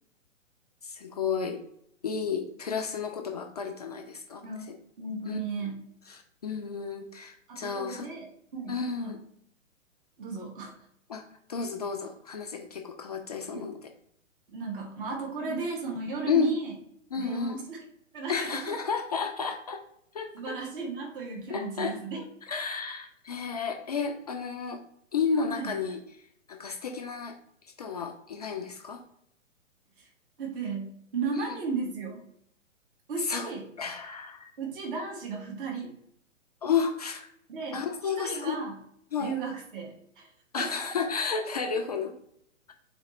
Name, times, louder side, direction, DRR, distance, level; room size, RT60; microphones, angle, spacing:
voice 1, 0.8-1.7 2.0-4.8 5.3-5.4 6.1-8.1 8.7-9.2 11.1-11.2 11.5-13.9 15.5-15.7 16.3-16.6 17.1-17.6 18.3-19.8 20.1-20.6 21.5-24.8 25.1-27.4 27.8-29.0 31.4-31.5 33.2-33.5 33.8-34.5 36.6-37.3 37.7-38.6 39.1-39.4 40.5-42.1, left 5 dB, 30° left, 4 dB, 0.4 m, -32 dB
voice 2, 5.0-5.8 7.5-8.3 8.5-9.2 10.2-10.7 13.5-13.7 14.5-16.7 17.2-17.8 18.1-18.7 20.3-22.2 25.5-25.7 30.0-30.1 30.4-32.2 33.1-33.6 34.6-35.9 37.5-37.8 38.2-38.7 39.2-40.3 40.6-40.7, right 4 dB, 40° right, 0 dB, 1.5 m, -35 dB
4.1 x 4.0 x 2.9 m, 0.72 s
figure-of-eight pair, 125°, 39 cm